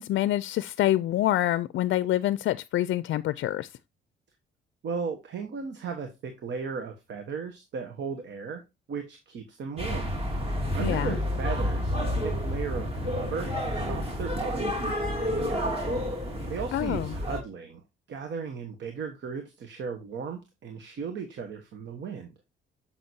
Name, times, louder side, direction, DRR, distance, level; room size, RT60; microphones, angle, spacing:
voice 1, 0.0-3.7 10.8-11.2 16.7-17.1, left 14 dB, 70° left, 0.4 m, -26 dB
voice 2, 4.8-8.6 8.9-10.1 10.7-15.8 16.5-17.8 18.1-22.3, right 5 dB, 65° right, 1.2 m, -36 dB
sound 1, 9.8-17.4, left 1 dB, 30° right, 2.6 m, -30 dB
7.7 x 6.0 x 2.7 m
cardioid pair, 90°, 20 cm